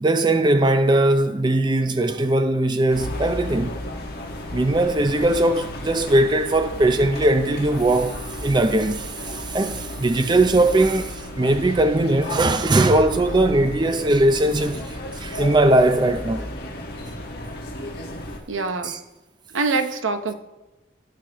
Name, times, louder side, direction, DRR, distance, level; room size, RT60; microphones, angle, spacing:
voice 1, 0.0-3.8 4.5-16.5 18.8-19.0, right 1 dB, 20° right, 0.4 m, -20 dB
sound 1, 2.9-18.4, left 1 dB, 55° left, 1.5 m, -33 dB
voice 2, 18.5-19.0 19.5-20.3, right 4 dB, 85° right, 0.8 m, -24 dB
16.0 x 6.0 x 3.0 m
head